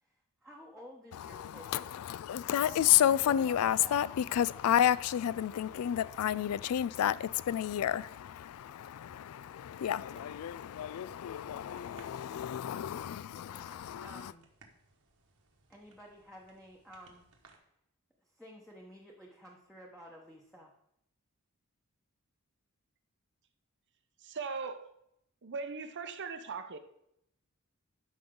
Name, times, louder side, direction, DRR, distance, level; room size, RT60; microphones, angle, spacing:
voice 1, 0.0-2.1 2.6-4.1 10.1-10.4 13.4-14.5 15.7-17.3 17.6-17.7 18.3-20.7, equal, ahead, 1.1 m, -52 dB
voice 2, 1.1-14.3, left 10 dB, 70° left, 0.3 m, -31 dB
sound 1, 10.0-17.6, right 3 dB, 75° right, 1.5 m, -63 dB
voice 3, 24.2-24.9 25.4-26.8, right 4 dB, 55° right, 0.8 m, -39 dB
12.5 x 5.4 x 3.8 m
head